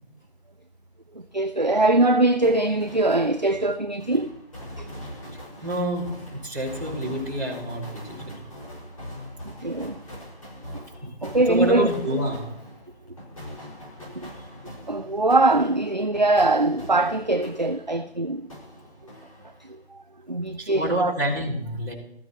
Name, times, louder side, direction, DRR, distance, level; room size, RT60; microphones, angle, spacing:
voice 1, 1.3-4.3 4.8-4.9 9.6-10.0 10.7-10.8 11.2-11.9 14.2-14.3 14.9-18.4 20.3-21.1, right 2 dB, 45° right, 0.5 m, -22 dB
sound 1, 2.4-18.1 18.5-19.8, equal, 30° left, 5.6 m, -42 dB
voice 2, 5.6-8.3 11.5-12.6 20.6-21.9, right 1 dB, 20° right, 3.2 m, -28 dB
19.5 x 14.0 x 3.1 m
figure-of-eight pair, 175°, 32 cm